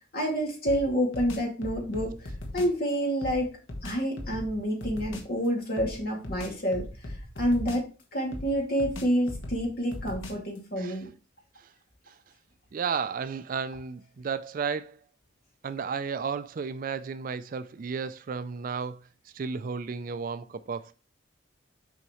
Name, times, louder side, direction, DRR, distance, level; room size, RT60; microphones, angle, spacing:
voice 1, 0.1-3.5 3.8-6.9 7.4-7.8 8.1-11.1, equal, 50° left, 2.3 m, -28 dB
sound 1, 0.7-2.8 3.2-5.4 5.8-8.0 8.3-10.6, left 1 dB, 75° left, 1.2 m, -39 dB
voice 2, 12.7-15.0 15.6-19.1 19.3-20.9, right 5 dB, 45° right, 0.3 m, -33 dB
7.0 x 4.7 x 3.0 m
head